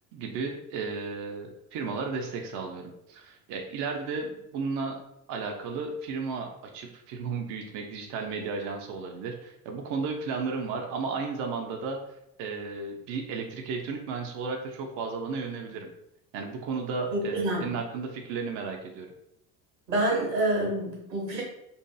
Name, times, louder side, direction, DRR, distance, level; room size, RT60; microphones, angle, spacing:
voice 1, 0.1-5.0 5.3-15.9 16.3-19.1, right 4 dB, 40° right, 3 dB, 0.4 m, -34 dB
voice 2, 17.1-17.7 19.9-21.4, right 1 dB, 85° right, -3 dB, 1.1 m, -27 dB
2.6 x 2.5 x 2.2 m, 0.80 s
figure-of-eight pair, 60°, 48 cm